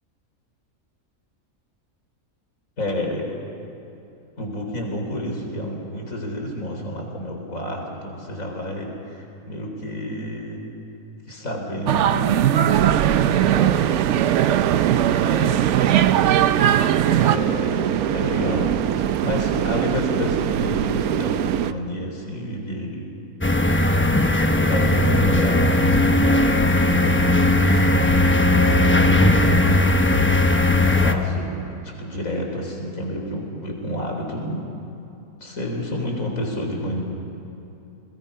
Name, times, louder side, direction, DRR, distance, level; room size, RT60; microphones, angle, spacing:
voice 1, 2.8-3.3 4.4-10.6 11.3-12.7 13.3-13.8 15.2-15.7 17.1-23.1 24.6-27.2 27.6-28.2 28.5-29.9 31.0-31.5 31.8-34.6 35.4-37.0, left 1 dB, 65° left, 1 dB, 4.3 m, -30 dB
sound 1, 11.9-17.4, right 11 dB, 60° right, 0.9 m, -19 dB
sound 2, 12.7-21.7, right 10 dB, 85° right, 1.2 m, -24 dB
sound 3, 23.4-31.1, left 2 dB, 10° left, 0.8 m, -18 dB
30.0 x 21.5 x 5.6 m, 2.8 s
omnidirectional pair, 1.5 m